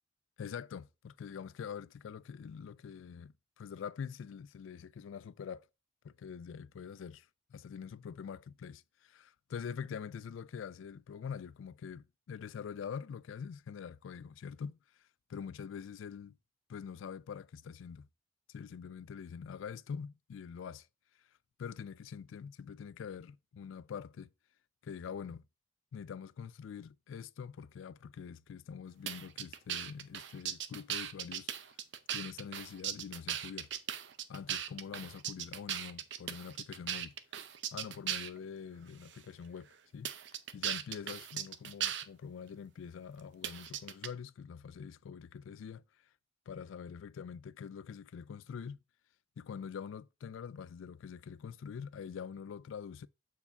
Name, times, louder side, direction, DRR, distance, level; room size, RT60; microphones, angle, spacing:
voice 1, 0.4-5.7 6.0-16.4 16.7-18.1 18.5-20.9 21.6-24.3 24.8-25.4 25.9-31.8 32.1-33.7 34.3-37.1 37.7-40.1 40.5-45.8 46.5-48.8 49.4-53.1, left 7 dB, 85° left, 0.3 m, -45 dB
sound 1, 29.1-38.4 39.1-39.2 40.0-42.0 43.4-44.1, right 10 dB, 65° right, 0.6 m, -38 dB
6.9 x 4.7 x 3.3 m
head